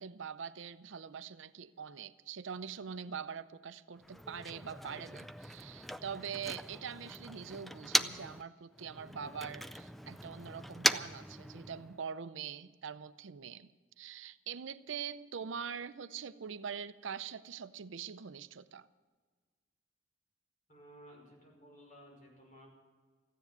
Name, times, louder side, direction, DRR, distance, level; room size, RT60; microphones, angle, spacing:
voice 1, 0.0-18.9, right 7 dB, 75° right, 14 dB, 0.6 m, -43 dB
Motor vehicle (road), 4.0-8.4 8.7-12.0, equal, ahead, 0.4 m, -38 dB
voice 2, 20.7-22.7, equal, 45° left, -1 dB, 5.6 m, -56 dB
15.0 x 9.9 x 9.3 m, 1.4 s
head